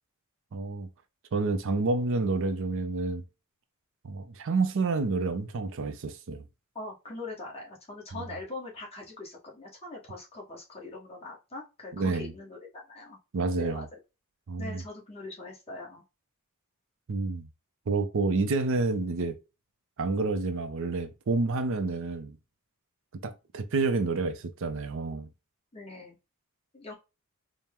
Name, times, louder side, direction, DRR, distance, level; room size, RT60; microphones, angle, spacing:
voice 1, 0.5-0.9 1.3-3.2 4.0-6.4 11.9-12.3 13.3-13.9 14.5-14.8 17.1-17.4 17.9-19.4 20.0-22.4 23.2-25.3, right 3 dB, 60° right, 0.5 m, -29 dB
voice 2, 6.7-13.2 13.6-14.0 14.6-16.0 25.7-26.2 26.7-26.9, left 2 dB, 30° left, 1.3 m, -42 dB
4.3 x 2.1 x 3.5 m
head